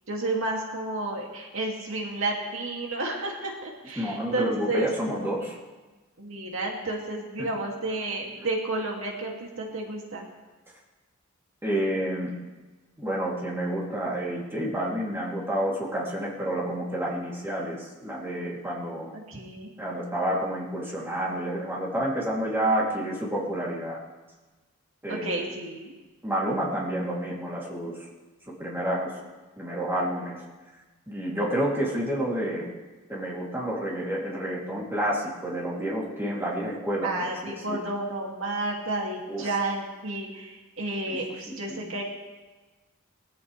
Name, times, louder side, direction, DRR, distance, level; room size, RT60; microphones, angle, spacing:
voice 1, 0.1-4.9 6.2-10.2 19.1-19.7 25.1-25.9 37.0-42.0, right 2 dB, 65° right, -1 dB, 2.4 m, -31 dB
voice 2, 4.0-5.6 7.4-7.5 11.6-12.3 13.0-19.1 19.8-24.0 25.0-25.4 26.2-28.1 28.6-29.2 29.6-30.4 31.1-32.7 33.1-37.8 39.3-39.5 41.1-41.2 41.7-41.9, right 1 dB, 10° right, -6 dB, 2.9 m, -29 dB
21.5 x 14.5 x 3.3 m, 1.2 s
head